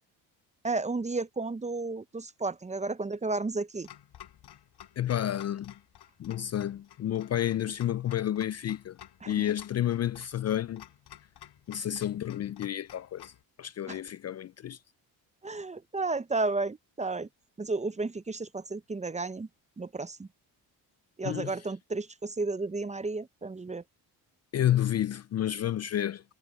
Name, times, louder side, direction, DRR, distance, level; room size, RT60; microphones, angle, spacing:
voice 1, 0.6-3.9 9.2-9.4 13.9-14.0 15.4-17.3 17.6-19.5 19.8-20.3 21.2-23.8, right 3 dB, 15° right, 0.7 m, -32 dB
Clock, 3.8-13.4, left 11 dB, 70° left, 5.6 m, -53 dB
voice 2, 5.0-5.7 6.2-9.0 9.3-10.8 11.7-13.3 13.6-14.8 21.2-21.5 24.5-26.2, left 11 dB, 40° left, 0.4 m, -30 dB
cardioid pair, 75°, 41 cm